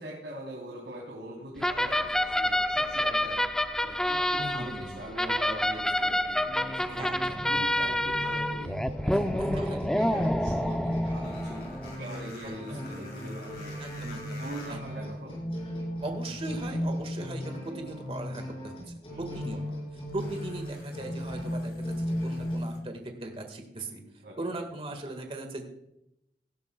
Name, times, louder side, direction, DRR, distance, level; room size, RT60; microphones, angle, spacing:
voice 1, 0.0-3.4 3.8-7.2 7.5-11.6 12.0-14.0 14.3-15.4 19.1-19.4 24.2-24.5, right 1 dB, 75° right, -3 dB, 3.4 m, -42 dB
sound 1, 1.6-12.0, left 1 dB, 5° left, 0.4 m, -28 dB
voice 2, 4.4-5.0 7.0-7.9 9.4-9.9 12.4-13.1 13.8-14.4 14.7-15.1 16.0-19.6 19.9-24.0 24.4-25.6, right 2 dB, 35° right, 4 dB, 1.7 m, -39 dB
sound 2, 6.5-22.6, equal, 35° left, 5.2 m, -36 dB
sound 3, 11.2-14.9 16.0-16.1 20.1-22.8, left 2 dB, 60° left, 5.1 m, -50 dB
17.5 x 12.0 x 2.3 m, 0.84 s
head